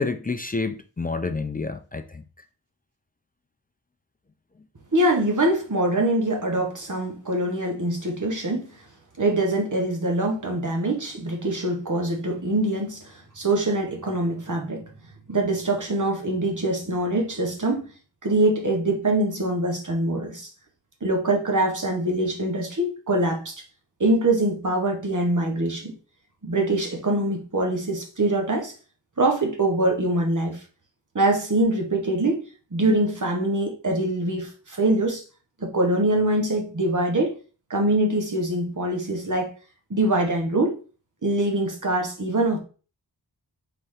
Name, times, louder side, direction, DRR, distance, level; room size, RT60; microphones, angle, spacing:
voice 1, 0.0-2.2, left 3 dB, 20° left, 0.4 m, -28 dB
voice 2, 4.9-8.7 9.2-14.8 15.3-17.9 18.2-20.5 21.0-23.5 24.0-25.9 26.4-28.7 29.2-30.6 31.1-32.5 32.7-35.2 35.6-37.3 37.7-39.5 39.9-40.8 41.2-42.6, right 1 dB, 45° right, 1.3 m, -24 dB
4.1 x 3.5 x 3.3 m
wide cardioid pair, 50°, 43 cm